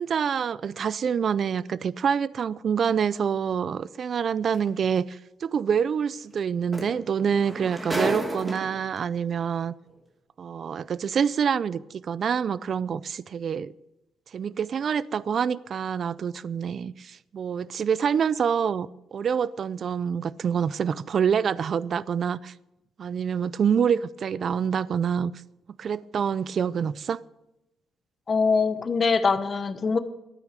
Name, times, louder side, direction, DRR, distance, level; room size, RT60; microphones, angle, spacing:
voice 1, 0.0-9.7 10.4-13.7 14.3-22.5 23.0-25.3 25.8-27.2, right 7 dB, 45° right, 20 dB, 0.4 m, -26 dB
sound 1, 4.5-4.7 6.4-6.5 6.7-9.0 9.9-10.0, right 1 dB, 20° right, 2.1 m, -32 dB
voice 2, 28.3-30.0, left 4 dB, 35° left, 11 dB, 1.0 m, -23 dB
13.0 x 9.2 x 6.6 m, 0.91 s
cardioid pair, 130°, 0 cm